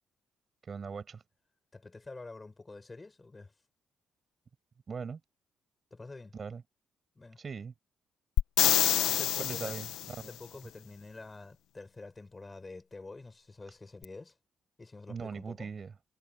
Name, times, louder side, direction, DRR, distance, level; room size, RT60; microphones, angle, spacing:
voice 1, 0.6-1.2 4.9-5.2 6.3-6.6 7.4-7.7 9.4-10.3 15.1-15.9, right 5 dB, 40° right, 6.8 m, -40 dB
voice 2, 1.7-3.5 5.9-6.3 7.2-7.4 9.1-9.7 10.3-14.3 14.8-15.7, left 3 dB, 20° left, 7.4 m, -47 dB
sound 1, 8.4-10.2 14.0-14.1, left 12 dB, 85° left, 1.0 m, -27 dB
cardioid pair, 90°, 0 cm